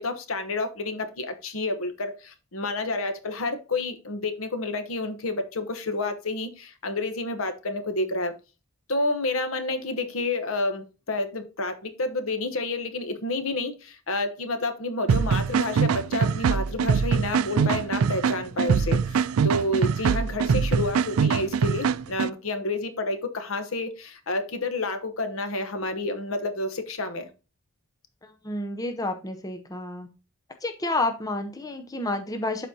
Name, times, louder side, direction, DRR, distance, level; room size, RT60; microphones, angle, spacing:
voice 1, 0.0-8.3 8.9-27.3, left 2 dB, 75° left, 1.0 m, -29 dB
sound 1, 15.1-22.3, right 6 dB, 85° right, 0.4 m, -23 dB
voice 2, 28.2-30.1 30.6-32.7, left 2 dB, 15° left, 0.6 m, -30 dB
12.0 x 4.1 x 2.8 m
head